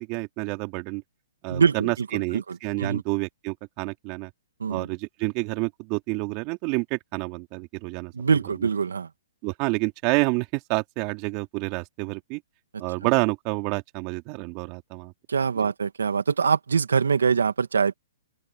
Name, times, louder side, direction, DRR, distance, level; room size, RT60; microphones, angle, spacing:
voice 1, 0.1-1.0 1.4-4.3 4.7-8.1 8.6-8.7 9.4-12.4 12.8-15.1 15.6-15.7, right 27 dB, 35° right, 2.8 m, -28 dB
voice 2, 1.5-3.0 4.6-4.9 8.1-9.1 15.3-17.9, right 6 dB, 85° right, 2.2 m, -24 dB
open air
hypercardioid pair, 135°, 0 cm